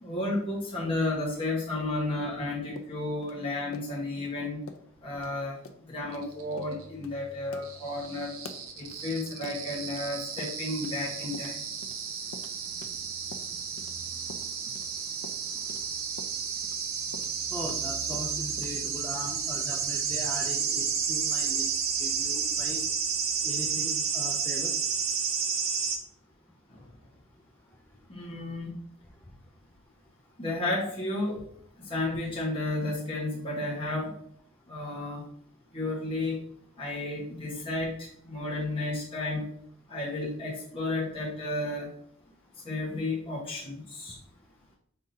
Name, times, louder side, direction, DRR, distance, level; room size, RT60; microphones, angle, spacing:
voice 1, 0.0-4.6 5.0-5.5 5.9-8.3 8.8-11.6 28.1-28.8 30.4-31.4 31.8-34.1 34.7-35.2 35.7-36.4 36.8-39.5 39.9-41.9 42.6-44.1, left 2 dB, 25° left, -6 dB, 1.2 m, -32 dB
sound 1, 2.8-4.3 4.7-4.9 5.1-5.3 5.6-5.8 6.1-6.2 6.6-6.8 7.0-7.2 7.5-10.1 10.4-11.0 11.3-14.0 14.3-17.9 18.1-18.8, left 3 dB, 75° left, 0.5 m, -47 dB
sound 2, 6.2-26.0, right 6 dB, 85° right, 0.7 m, -32 dB
voice 2, 17.5-21.7 22.0-22.8 23.4-24.7, left 1 dB, 10° left, 0 dB, 0.4 m, -39 dB
5.4 x 3.7 x 2.7 m, 0.66 s
head